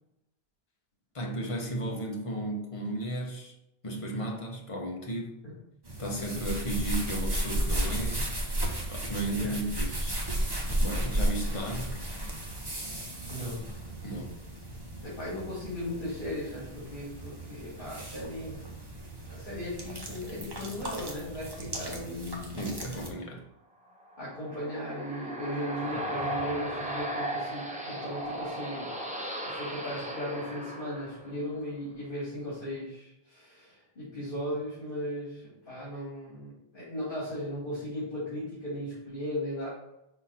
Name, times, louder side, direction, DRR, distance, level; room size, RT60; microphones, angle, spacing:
voice 1, 1.1-3.5 3.8-5.4 6.0-8.3 8.9-10.2 10.8-12.0 14.0-14.7 22.6-23.5, right 1 dB, 35° left, 1 dB, 1.1 m, -34 dB
sound 1, 5.8-23.1, right 1 dB, 25° right, 1.0 m, -34 dB
voice 2, 13.3-13.6 15.0-18.7 19.3-23.0 24.2-28.9 29.5-39.7, left 1 dB, 55° left, -9 dB, 2.7 m, -37 dB
sound 2, 24.1-31.6, right 1 dB, 10° right, 0.8 m, -36 dB
5.8 x 4.3 x 4.2 m, 0.83 s
omnidirectional pair, 1.1 m